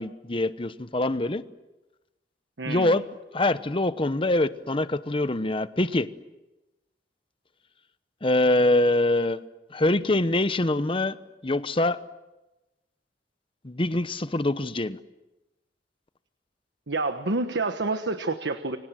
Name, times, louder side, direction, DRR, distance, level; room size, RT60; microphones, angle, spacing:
voice 1, 0.0-1.4 2.6-3.0 3.3-6.1 8.2-9.4 9.7-11.2 11.4-12.0 13.6-15.0, left 2 dB, 30° left, 13 dB, 1.0 m, -24 dB
voice 2, 2.6-3.0 16.9-18.8, right 3 dB, 80° right, 8 dB, 1.3 m, -28 dB
30.0 x 24.5 x 7.6 m, 1.0 s
head